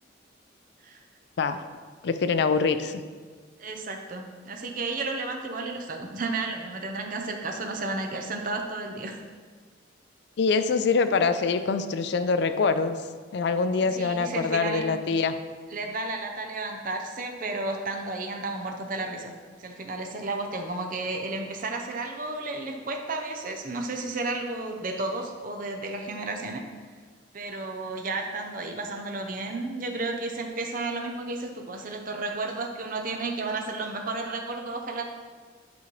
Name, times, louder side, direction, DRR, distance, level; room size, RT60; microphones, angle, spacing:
voice 1, 2.0-3.0 10.4-13.0 13.3-15.4, left 4 dB, 60° left, 10 dB, 0.4 m, -24 dB
voice 2, 3.6-9.2 13.9-14.9 15.7-19.3 19.6-26.6 27.3-35.0, right 2 dB, 45° right, 3 dB, 0.6 m, -32 dB
8.3 x 5.1 x 3.1 m, 1.5 s
head